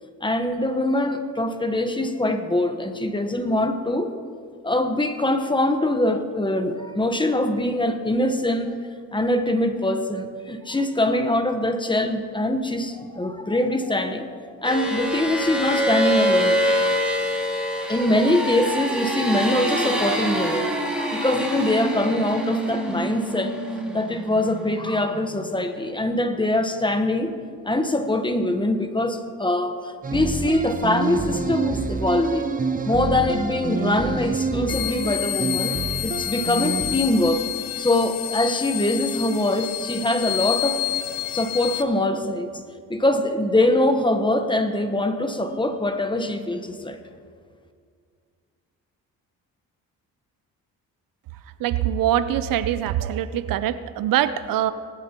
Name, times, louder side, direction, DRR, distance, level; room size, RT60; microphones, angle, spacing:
voice 1, 0.2-4.1 4.6-8.8 9.1-16.6 17.9-20.7 21.1-23.6 23.9-27.3 27.6-32.5 32.8-35.8 36.0-37.4 37.8-40.8 41.3-42.5 42.9-47.0, left 1 dB, 15° left, 7 dB, 1.1 m, -23 dB
sound 1, 14.6-25.5, equal, 5° right, 3.1 m, -25 dB
sound 2, 30.0-37.0, right 4 dB, 25° right, 0.8 m, -28 dB
sound 3, 34.7-41.8, left 17 dB, 75° left, 0.7 m, -29 dB
voice 2, 51.6-54.7, right 11 dB, 75° right, 13 dB, 0.6 m, -23 dB
19.5 x 11.0 x 3.0 m, 2.1 s
cardioid pair, 75°, 34 cm